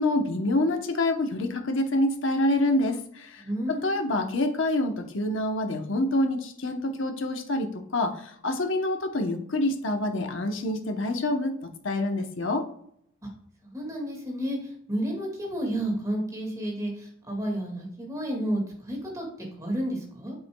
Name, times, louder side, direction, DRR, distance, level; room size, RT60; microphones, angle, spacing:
voice 1, 0.0-11.5 11.8-12.6, left 1 dB, 65° left, 6 dB, 0.9 m, -27 dB
voice 2, 3.4-3.9 13.6-20.4, right 1 dB, 15° right, 0 dB, 1.9 m, -31 dB
8.4 x 7.1 x 2.2 m, 0.68 s
head